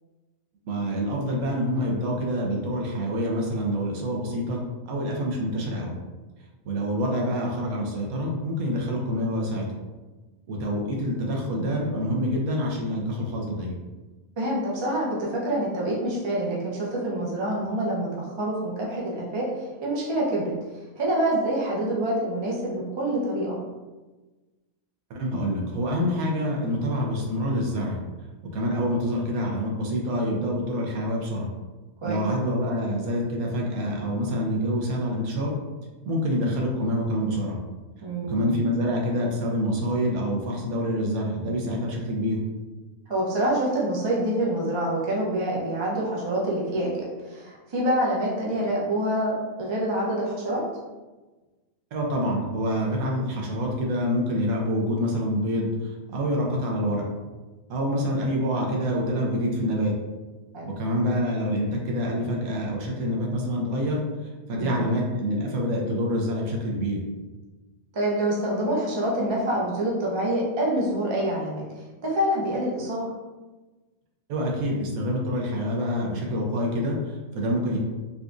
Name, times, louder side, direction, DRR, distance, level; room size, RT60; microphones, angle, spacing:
voice 1, 0.7-4.6 4.9-6.0 6.6-9.7 10.5-13.8 25.1-28.0 28.5-31.5 32.0-35.6 36.1-37.6 38.3-42.4 51.9-57.0 57.7-59.9 60.7-64.0 64.5-67.0 74.3-77.8, equal, 80° right, -1 dB, 1.1 m, -26 dB
voice 2, 11.5-12.3 14.4-19.4 19.8-20.5 21.0-23.6 32.0-32.2 38.0-38.6 43.1-49.3 49.6-50.6 60.5-60.7 64.5-64.9 67.9-71.6 72.0-73.1, right 1 dB, 40° right, -4 dB, 0.3 m, -26 dB
4.0 x 2.3 x 2.4 m, 1.2 s
omnidirectional pair, 1.5 m